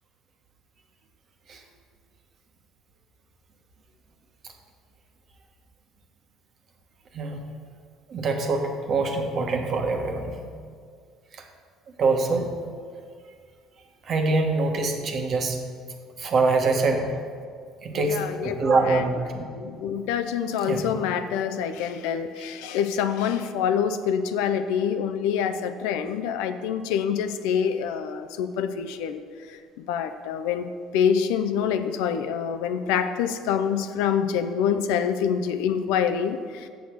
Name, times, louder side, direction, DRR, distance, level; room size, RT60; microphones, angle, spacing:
voice 1, 8.1-10.4 11.3-11.4 12.0-12.5 14.0-15.6 16.2-17.1 17.8-19.4 20.7-20.9, right 3 dB, 50° right, 3 dB, 1.2 m, -24 dB
voice 2, 17.9-18.6 18.9-19.1 19.6-29.2 29.9-30.7 30.9-36.7, left 8 dB, 80° left, 10 dB, 0.5 m, -26 dB
7.0 x 6.2 x 6.3 m, 2.1 s
supercardioid pair, 75°, 0 cm